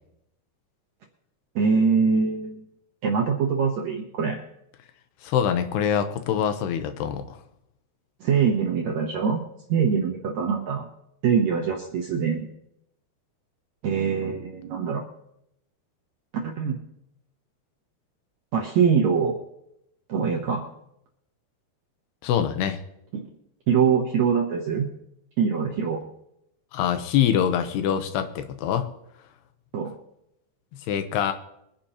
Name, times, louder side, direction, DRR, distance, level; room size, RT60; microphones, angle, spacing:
voice 1, 1.6-2.6 3.0-4.4 8.2-10.9 11.2-12.4 13.8-15.0 16.3-16.8 18.5-19.4 20.1-20.7 23.1-23.2 23.7-24.9 25.4-26.0 29.7-29.9, right 6 dB, 70° right, 1 dB, 1.7 m, -23 dB
voice 2, 5.2-7.4 22.2-22.8 26.7-28.9 30.9-31.3, left 9 dB, 90° left, 8 dB, 3.0 m, -24 dB
23.0 x 10.5 x 2.9 m, 0.80 s
omnidirectional pair, 4.6 m